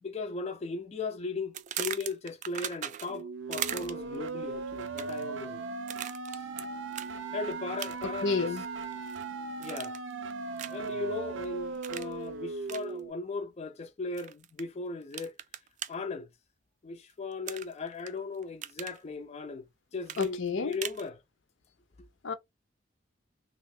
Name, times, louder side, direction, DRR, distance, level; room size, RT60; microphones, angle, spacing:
voice 1, 0.0-5.6 6.3-6.5 7.3-8.5 9.6-10.0 10.7-15.3 15.9-16.3 16.8-21.2 22.0-22.1, left 3 dB, 35° left, 0.4 m, -37 dB
sound 1, 1.5-3.2 3.5-4.2 4.8-5.3 5.9-6.6 6.9-7.1 7.8-8.2 8.6-9.2 9.6-10.1 10.6-10.9 11.8-12.1 12.7-12.8 14.2-14.6 15.1-15.9 17.5-18.1 18.4-19.0 20.1-21.0, right 10 dB, 40° right, 0.3 m, -38 dB
sound 2, 3.1-13.1, right 4 dB, 85° right, 0.6 m, -38 dB
voice 2, 8.2-8.6 20.2-20.8 22.2-22.3, left 4 dB, 80° left, 0.7 m, -30 dB
3.0 x 2.4 x 3.5 m
head